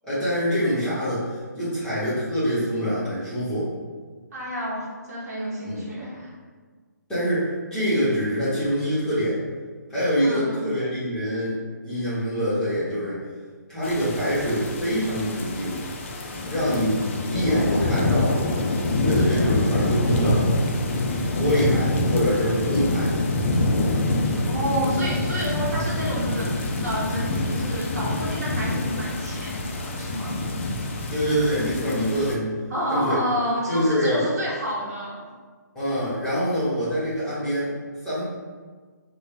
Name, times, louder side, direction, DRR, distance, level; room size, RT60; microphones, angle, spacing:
voice 1, 0.0-3.7 5.6-5.8 7.1-9.4 9.9-11.6 11.8-13.2 13.7-15.7 16.5-17.0 17.3-18.3 19.0-20.4 21.4-23.1 31.1-32.5 32.9-33.2 33.7-34.3 35.7-37.7 38.0-38.2, equal, 5° left, -13 dB, 1.1 m, -25 dB
voice 2, 4.3-6.3 10.2-10.7 24.4-30.4 32.7-35.3, equal, 55° right, -5 dB, 1.0 m, -30 dB
sound 1, 13.8-32.4, left 2 dB, 40° left, 0.4 m, -25 dB
3.2 x 2.2 x 3.2 m, 1.5 s
figure-of-eight pair, 150°, 10 cm